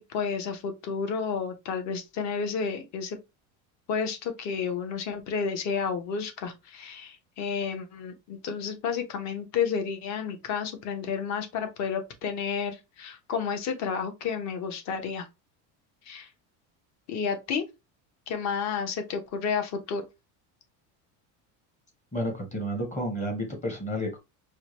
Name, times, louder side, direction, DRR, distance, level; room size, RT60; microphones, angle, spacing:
voice 1, 0.0-3.2 3.9-15.3 16.0-16.3 17.1-17.7 18.3-20.0, left 6 dB, 45° left, 0.9 m, -31 dB
voice 2, 22.1-24.2, equal, 20° left, 1.0 m, -31 dB
4.7 x 2.2 x 3.0 m
cardioid pair, 160°, 39 cm